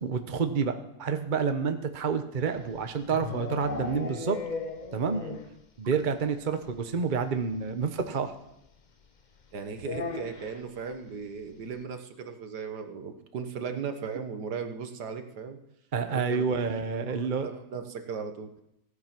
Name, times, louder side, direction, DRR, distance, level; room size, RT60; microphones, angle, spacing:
voice 1, 0.0-4.4 4.9-5.2 5.8-8.3 15.9-17.5, right 5 dB, 35° right, 8 dB, 0.8 m, -29 dB
sound 1, 2.5-5.6 5.9-6.0 6.3-6.4 6.6-6.8 8.0-8.1 9.8-10.7, left 4 dB, 35° left, 0.7 m, -36 dB
voice 2, 9.5-15.6 16.1-16.7 17.1-18.6, right 6 dB, 60° right, 7 dB, 1.7 m, -37 dB
16.0 x 9.9 x 5.9 m, 0.81 s
omnidirectional pair, 2.1 m